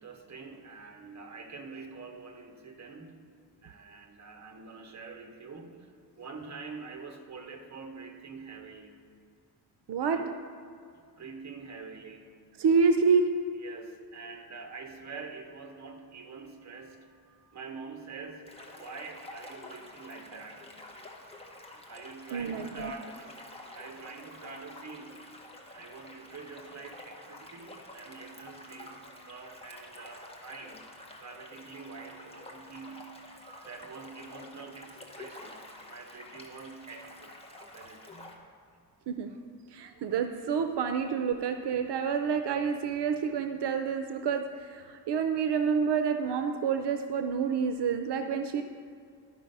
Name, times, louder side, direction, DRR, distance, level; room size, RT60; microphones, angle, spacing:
voice 1, 0.0-3.3 3.6-9.0 10.0-10.5 11.0-12.3 13.6-20.7 21.9-25.4 25.7-30.9 31.2-33.2 33.6-38.4, right 4 dB, 45° right, 3 dB, 1.1 m, -46 dB
voice 2, 9.9-10.2 12.6-13.3 22.3-22.9 33.4-33.6 39.1-39.3 39.7-48.6, right 6 dB, 85° right, 7 dB, 0.6 m, -28 dB
sound 1, 18.5-38.4, left 1 dB, 15° left, 0.9 m, -49 dB
11.5 x 5.5 x 5.3 m, 2.3 s
wide cardioid pair, 165°, 40 cm